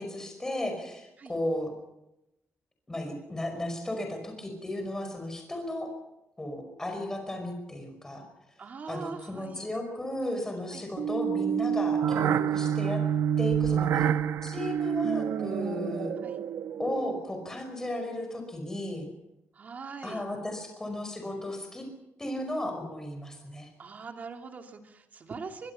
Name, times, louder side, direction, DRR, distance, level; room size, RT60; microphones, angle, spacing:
voice 1, 0.0-1.7 2.9-5.9 6.4-8.3 8.9-13.0 13.4-14.1 14.4-16.1 16.8-19.1 20.0-21.9 22.2-23.7, left 1 dB, 10° left, 4 dB, 5.3 m, -35 dB
voice 2, 8.6-9.7 10.7-10.9 16.2-16.4 19.5-20.2 23.8-25.7, right 5 dB, 35° right, 4 dB, 2.6 m, -42 dB
sound 1, 11.0-17.4, right 8 dB, 70° right, 1.0 m, -28 dB
23.5 x 23.0 x 5.7 m, 0.88 s
wide cardioid pair, 175°, 5 cm